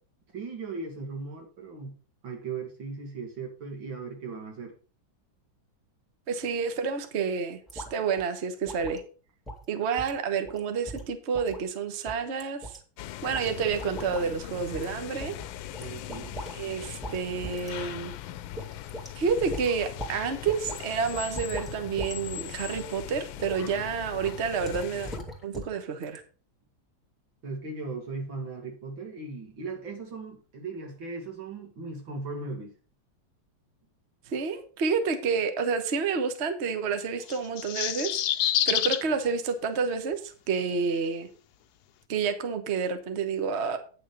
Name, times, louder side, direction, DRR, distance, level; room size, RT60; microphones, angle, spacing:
voice 1, 0.3-1.9 2.2-4.7 15.8-16.3 27.4-32.7, right 4 dB, 80° right, 2 dB, 2.9 m, -38 dB
voice 2, 6.3-9.0 9.7-12.8 13.2-15.4 16.5-18.1 19.2-25.1 25.4-26.2 34.3-38.2 38.6-41.3 42.1-43.8, right 5 dB, 40° right, 8 dB, 1.1 m, -29 dB
sound 1, 7.7-7.9 8.2-8.3 8.7-9.0 9.5-9.6 10.0-10.2 10.4-10.6 10.9-11.7 12.1-12.8 13.3-13.5 13.8-14.2 14.7-14.9 15.2-16.6 16.8-17.2 17.4-17.7 18.1-18.2 18.6-19.1 19.5-20.2 20.5-20.8 21.1-22.1 22.5-22.8 23.4-23.6 24.6-25.8 26.0-26.2, equal, ahead, 2.2 m, -39 dB
sound 2, 13.0-25.2, left 13 dB, 85° left, 1.4 m, -40 dB
sound 3, 37.3-39.0, left 11 dB, 65° left, 1.1 m, -27 dB
9.1 x 6.7 x 5.1 m, 0.38 s
omnidirectional pair, 2.1 m